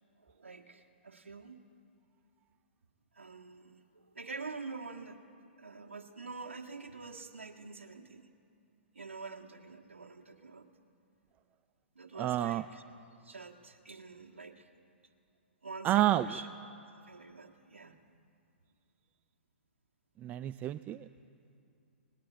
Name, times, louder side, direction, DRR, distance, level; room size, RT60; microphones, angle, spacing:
voice 1, 0.2-1.6 3.1-5.2 5.6-8.3 8.9-10.7 11.9-12.8 13.2-14.7 15.6-16.5 17.0-18.0, right 4 dB, 85° right, 1 dB, 1.5 m, -46 dB
voice 2, 12.2-12.6 15.8-16.4 20.2-21.1, right 14 dB, 25° right, 13 dB, 0.4 m, -29 dB
20.5 x 19.0 x 7.8 m, 2.5 s
hypercardioid pair, 125°, 7 cm